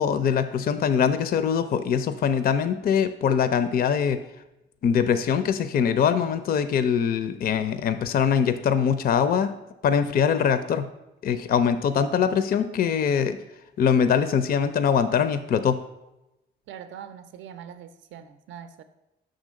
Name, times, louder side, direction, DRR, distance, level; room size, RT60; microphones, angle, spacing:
voice 1, 0.0-4.2 4.8-9.5 9.8-10.9 11.2-13.4 13.8-15.8, left 7 dB, 50° left, 11 dB, 0.4 m, -23 dB
voice 2, 16.7-18.8, right 8 dB, 70° right, 10 dB, 0.5 m, -42 dB
6.0 x 3.8 x 6.2 m, 0.93 s
cardioid pair, 90°, 20 cm